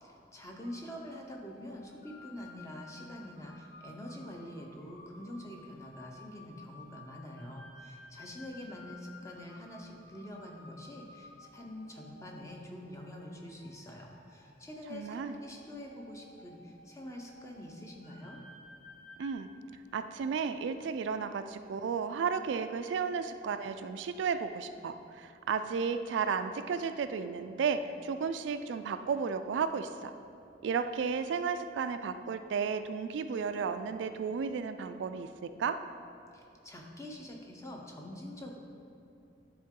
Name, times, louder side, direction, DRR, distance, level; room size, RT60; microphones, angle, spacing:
voice 1, 0.0-18.4 36.3-38.6, left 1 dB, 15° left, 0 dB, 0.7 m, -46 dB
sound 1, 0.6-19.3, left 2 dB, 55° left, 1.1 m, -55 dB
voice 2, 14.9-15.4 19.2-19.5 19.9-30.1 30.6-35.8, right 6 dB, 75° right, 9 dB, 0.3 m, -33 dB
10.5 x 3.7 x 3.7 m, 2.7 s
head